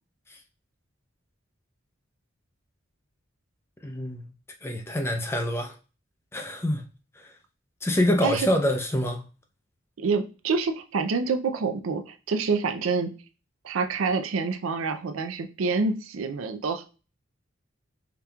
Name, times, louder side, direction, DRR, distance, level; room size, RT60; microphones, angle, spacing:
voice 1, 3.8-4.3 4.6-5.7 6.3-6.8 7.2-7.3 7.8-9.3, left 1 dB, 10° left, 0.5 m, -26 dB
voice 2, 10.0-13.1 13.6-16.8, right 4 dB, 85° right, 0.5 m, -27 dB
5.1 x 2.8 x 2.3 m
head